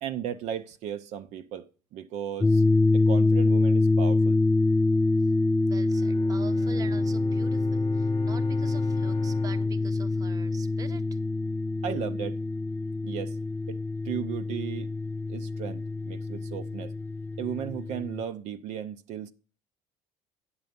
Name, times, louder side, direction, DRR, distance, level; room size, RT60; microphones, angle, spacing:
voice 1, 0.0-2.6 2.9-4.4 11.8-12.4 13.0-13.4 13.7-13.8 14.0-14.9 15.3-16.9 17.4-19.3, right 9 dB, 65° right, 0.7 m, -35 dB
sound 1, 2.4-18.2, left 2 dB, 15° left, 0.4 m, -25 dB
voice 2, 5.7-11.2, right 6 dB, 30° right, 0.8 m, -46 dB
Bowed string instrument, 5.8-11.4, left 5 dB, 35° left, 0.8 m, -44 dB
9.6 x 6.8 x 5.2 m
cardioid pair, 135°, 13 cm